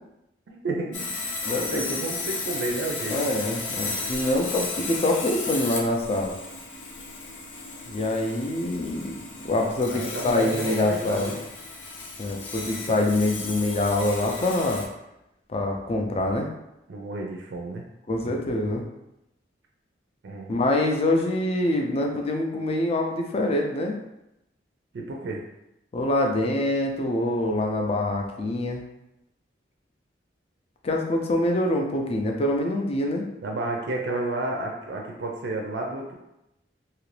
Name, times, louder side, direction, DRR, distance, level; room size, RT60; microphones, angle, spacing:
voice 1, 0.5-1.1 1.6-3.2 9.9-11.4 16.9-17.8 20.2-20.6 24.9-25.4 33.4-36.1, right 2 dB, 65° right, 0 dB, 0.4 m, -31 dB
Sawing, 0.9-14.8, left 3 dB, 90° left, 0.6 m, -34 dB
voice 2, 1.4-2.0 3.1-6.3 7.9-9.2 9.5-11.3 12.2-14.9 15.5-16.5 18.1-18.8 20.5-23.9 25.9-28.8 30.8-33.3, left 1 dB, 35° left, 2 dB, 0.4 m, -25 dB
2.8 x 2.5 x 3.2 m, 0.88 s
head